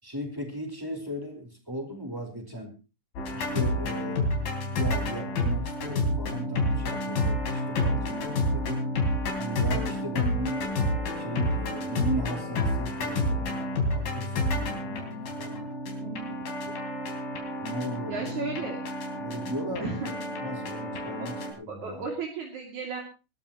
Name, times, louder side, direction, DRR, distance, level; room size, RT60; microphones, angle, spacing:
voice 1, 0.0-2.7 3.3-4.3 4.8-8.8 9.4-15.7 16.6-16.8 17.6-18.5 19.2-20.1 20.4-22.0, equal, 5° right, 3 dB, 4.1 m, -37 dB
sound 1, 3.2-21.5, left 1 dB, 85° left, 5.3 m, -29 dB
voice 2, 16.0-16.3 18.1-18.8 19.8-20.1 21.2-21.3 21.7-23.0, right 4 dB, 60° right, 0 dB, 3.8 m, -34 dB
23.0 x 13.5 x 3.0 m, 0.32 s
omnidirectional pair, 3.9 m